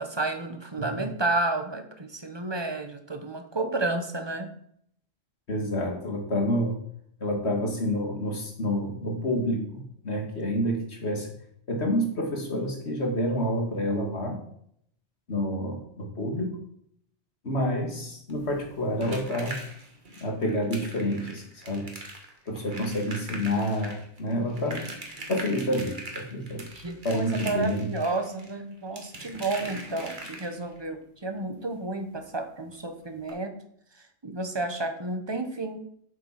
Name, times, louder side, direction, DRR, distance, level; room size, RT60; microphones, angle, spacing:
voice 1, 0.0-4.5 22.7-22.9 26.7-33.5 33.9-35.8, right 2 dB, 25° right, 7 dB, 1.2 m, -31 dB
voice 2, 5.5-6.8 7.2-11.3 11.7-14.4 15.3-16.6 17.4-19.6 20.2-21.9 22.5-24.8 25.3-26.6 27.0-27.9, equal, 80° left, 2 dB, 2.5 m, -28 dB
sound 1, 18.3-30.8 32.3-32.4 32.7-32.8 33.2-33.3, right 2 dB, 50° right, 1.8 m, -41 dB
7.9 x 7.6 x 5.9 m, 0.68 s
omnidirectional pair, 1.1 m